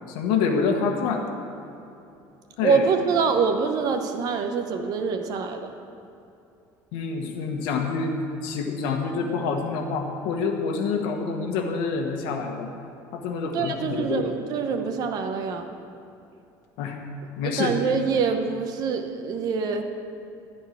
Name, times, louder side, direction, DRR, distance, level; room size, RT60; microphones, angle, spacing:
voice 1, 0.1-1.2 2.6-2.8 6.9-8.2 8.4-12.7 13.1-14.4 16.8-17.0 17.4-17.8, left 5 dB, 75° left, 3 dB, 1.2 m, -27 dB
voice 2, 2.6-5.7 13.5-15.7 17.4-19.8, right 5 dB, 50° right, 6 dB, 0.9 m, -25 dB
13.5 x 4.6 x 8.8 m, 2.7 s
cardioid pair, 150°, 9 cm